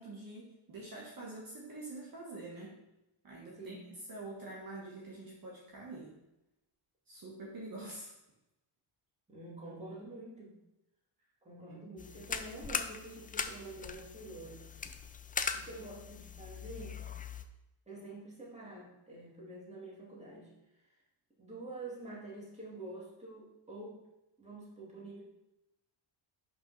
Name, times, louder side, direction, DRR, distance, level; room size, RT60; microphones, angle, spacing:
voice 1, 0.0-2.7 3.2-3.8 4.1-6.1 7.1-8.1 11.7-11.8, right 2 dB, 45° right, -4 dB, 1.8 m, -46 dB
voice 2, 3.5-3.9 9.3-10.6 11.4-14.6 15.5-17.1 17.9-21.0 21.4-24.0 24.4-25.2, right 2 dB, 15° right, -5 dB, 2.6 m, -47 dB
sound 1, 12.0-17.4, left 6 dB, 20° left, 0.3 m, -40 dB
5.9 x 5.2 x 5.6 m, 0.94 s
cardioid pair, 120°, 50 cm